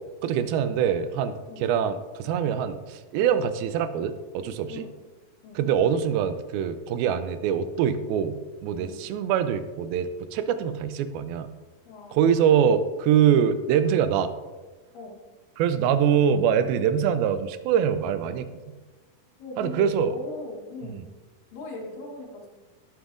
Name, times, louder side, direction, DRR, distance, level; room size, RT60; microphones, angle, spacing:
voice 1, 0.2-4.8 5.6-8.4 8.6-11.5 12.1-14.3 15.6-18.5 19.6-20.1, right 8 dB, 85° right, 11 dB, 2.4 m, -24 dB
voice 2, 11.9-12.4 14.9-15.2 19.4-21.1 21.5-22.5, left 2 dB, 70° left, 0 dB, 2.8 m, -38 dB
11.5 x 7.4 x 2.5 m, 1.3 s
omnidirectional pair, 4.2 m